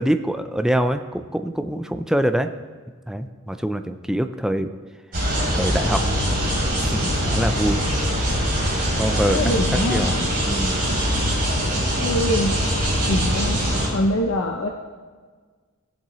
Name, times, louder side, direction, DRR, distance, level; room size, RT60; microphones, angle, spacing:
voice 1, 0.0-2.5 3.1-4.7 5.5-6.0 6.8-7.8 9.0-9.4 9.9-10.1 10.4-10.8, right 1 dB, 5° right, 8 dB, 0.3 m, -24 dB
sound 1, 5.1-13.9, equal, 45° right, 3.2 m, -22 dB
voice 2, 9.3-10.2 12.0-12.5 13.1-13.6 13.9-14.7, left 1 dB, 70° left, 1 dB, 0.7 m, -23 dB
16.0 x 7.4 x 3.1 m, 1.5 s
head